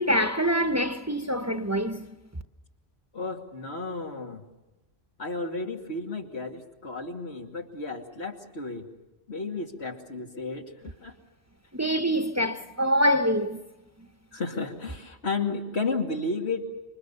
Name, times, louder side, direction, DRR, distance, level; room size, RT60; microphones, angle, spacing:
voice 1, 0.0-2.1 11.7-13.6 14.0-14.1, equal, 15° right, 0.9 m, -25 dB
voice 2, 3.1-4.4 5.2-8.9 9.3-11.1 14.3-16.6, left 3 dB, 90° left, 2.7 m, -33 dB
27.5 x 24.5 x 7.0 m
omnidirectional pair, 1.1 m